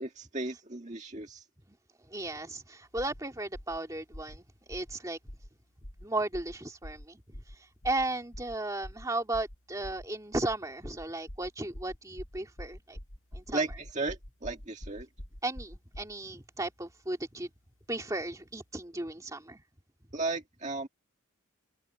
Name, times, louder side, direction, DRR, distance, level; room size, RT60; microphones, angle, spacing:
voice 1, 0.0-1.4 13.5-15.1 20.1-20.9, right 3 dB, 35° right, 1.8 m, -35 dB
voice 2, 2.1-5.2 6.0-7.2 7.8-13.0 13.3-13.6 15.4-17.5 17.9-19.6, right 2 dB, 15° right, 2.3 m, -35 dB
sound 1, 3.0-3.2 3.5-3.8 4.1-4.4 4.7-5.0 5.3-5.5 5.8-6.1 6.3-6.6 6.8-7.1 7.3-7.6 7.8-8.1 8.3-8.6 8.8-9.1 9.3-9.6 9.8-10.1 10.3-10.6 10.8-16.2, equal, 60° left, 5.1 m, -45 dB
head